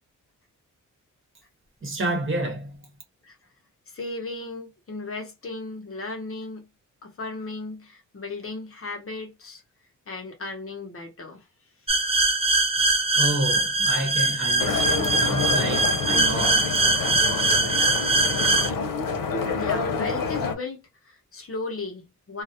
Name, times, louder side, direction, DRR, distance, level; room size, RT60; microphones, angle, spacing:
voice 1, 1.8-2.8 13.1-16.8, right 1 dB, 40° right, 0.9 m, -29 dB
voice 2, 3.9-6.7 7.0-9.6 10.1-11.4 11.8-12.1 19.5-22.4, left 3 dB, 45° left, 0.7 m, -36 dB
sound 1, 11.9-18.7, right 2 dB, 20° right, 0.4 m, -22 dB
sound 2, 14.6-20.5, left 5 dB, 85° left, 0.6 m, -28 dB
2.3 x 2.0 x 2.6 m
wide cardioid pair, 125°, 32 cm